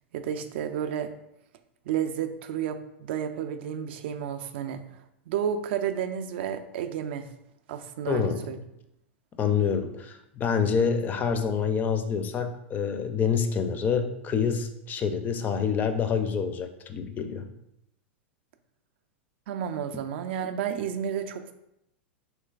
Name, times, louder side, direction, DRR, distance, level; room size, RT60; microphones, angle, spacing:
voice 1, 0.1-1.1 1.9-4.8 5.3-7.3 7.7-8.6 19.5-21.5, right 8 dB, 60° right, 8 dB, 0.3 m, -31 dB
voice 2, 8.1-8.5 9.4-17.5, left 6 dB, 25° left, 8 dB, 0.4 m, -27 dB
3.2 x 3.1 x 2.3 m, 0.82 s
hypercardioid pair, 100°, 6 cm